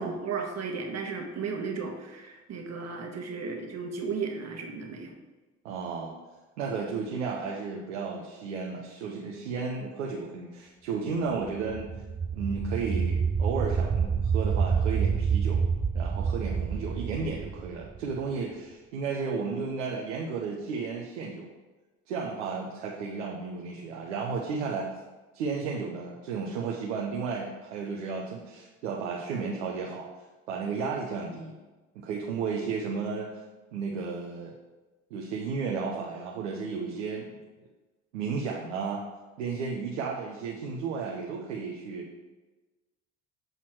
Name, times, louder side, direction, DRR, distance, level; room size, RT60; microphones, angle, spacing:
voice 1, 0.0-5.1, right 5 dB, 45° right, 3 dB, 1.4 m, -34 dB
voice 2, 5.6-6.1 6.6-11.9 12.3-15.6 15.9-21.5 22.1-24.9 25.3-30.1 30.5-31.5 31.9-33.4 33.7-34.5 35.1-37.4 38.1-39.0 39.4-42.0, right 5 dB, 85° right, -2 dB, 0.9 m, -33 dB
sound 1, 11.5-18.3, right 6 dB, 15° right, 0.5 m, -28 dB
7.8 x 4.2 x 4.6 m, 1.2 s
hypercardioid pair, 60°, 37 cm